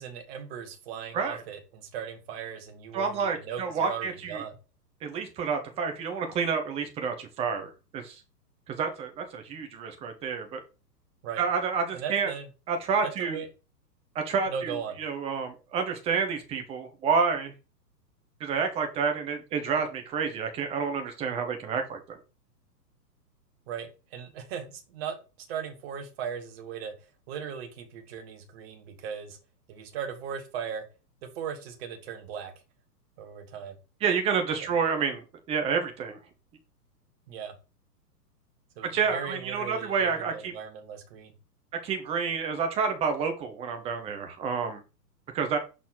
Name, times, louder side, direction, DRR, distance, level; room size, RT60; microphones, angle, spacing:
voice 1, 0.0-4.6 11.2-11.4 11.9-12.5 13.0-13.5 14.4-14.9 23.7-26.9 27.3-29.4 29.7-30.8 31.2-32.5 33.2-33.8 34.6-34.7 37.3-37.5 38.8-41.3, right 7 dB, 40° right, 6 dB, 1.5 m, -38 dB
voice 2, 2.9-4.4 5.0-8.2 8.7-10.6 11.4-12.3 12.7-13.4 14.1-17.5 18.4-22.2 34.0-36.2 38.9-40.5 41.8-44.8 45.3-45.6, right 5 dB, 10° right, 5 dB, 0.7 m, -29 dB
6.2 x 4.1 x 3.8 m, 0.31 s
figure-of-eight pair, 115°, 49 cm